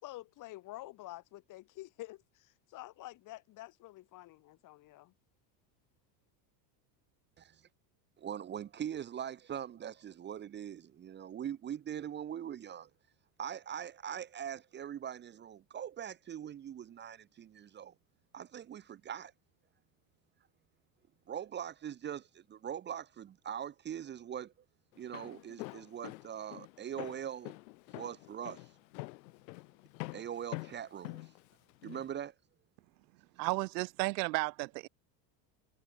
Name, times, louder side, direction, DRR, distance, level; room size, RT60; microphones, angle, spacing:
voice 1, 0.0-5.1, left 17 dB, 40° left, 3.9 m, -48 dB
voice 2, 8.2-12.9 13.4-17.9 18.3-19.3 21.3-24.5 24.9-27.6 27.9-28.7 30.1-31.3 31.8-32.3, right 9 dB, 20° right, 1.5 m, -42 dB
Walk footsteps, 24.9-32.1, left 23 dB, 80° left, 1.8 m, -46 dB
voice 3, 33.4-34.9, right 24 dB, 80° right, 1.2 m, -33 dB
cardioid pair, 170°, 50 cm